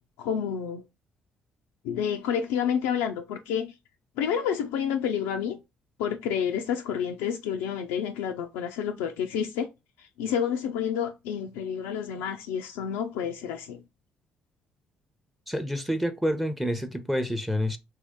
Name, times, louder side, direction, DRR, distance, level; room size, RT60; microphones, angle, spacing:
voice 1, 0.2-0.8 1.8-3.7 4.2-5.6 6.0-9.7 10.0-13.8, left 8 dB, 85° left, 0.3 m, -29 dB
voice 2, 15.5-17.8, equal, 5° right, 0.6 m, -28 dB
3.0 x 2.7 x 3.5 m
hypercardioid pair, 55°, 4 cm